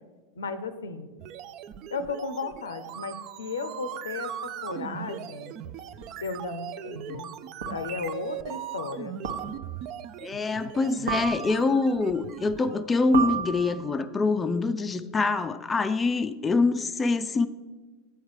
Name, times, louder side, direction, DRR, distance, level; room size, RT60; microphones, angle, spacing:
voice 1, 0.3-1.1 1.9-5.5 6.2-7.3 7.7-9.2, left 4 dB, 80° left, 12 dB, 0.6 m, -35 dB
sound 1, 1.2-12.8, right 10 dB, 45° right, 0.4 m, -39 dB
sound 2, 6.0-6.1 7.6-8.0 9.2-9.8 11.1-11.8 13.1-14.1, right 6 dB, 70° right, 1.1 m, -32 dB
voice 2, 10.2-17.5, left 3 dB, 20° left, 9 dB, 0.4 m, -25 dB
8.0 x 4.6 x 6.4 m, 1.3 s
figure-of-eight pair, 85°, 0 cm